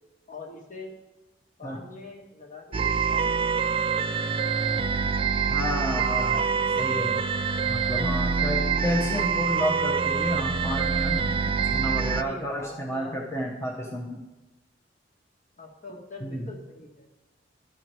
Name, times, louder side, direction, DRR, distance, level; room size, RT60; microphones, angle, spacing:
voice 1, 0.3-1.0 1.6-3.8 12.1-13.2 15.6-17.1, left 2 dB, 45° left, 0 dB, 1.7 m, -43 dB
sound 1, 2.7-12.2, right 5 dB, 30° right, 0.3 m, -25 dB
voice 2, 5.5-7.2 7.6-11.2 11.7-14.3 16.2-16.5, equal, 15° left, -2 dB, 0.9 m, -31 dB
12.0 x 5.8 x 4.7 m, 1.0 s
head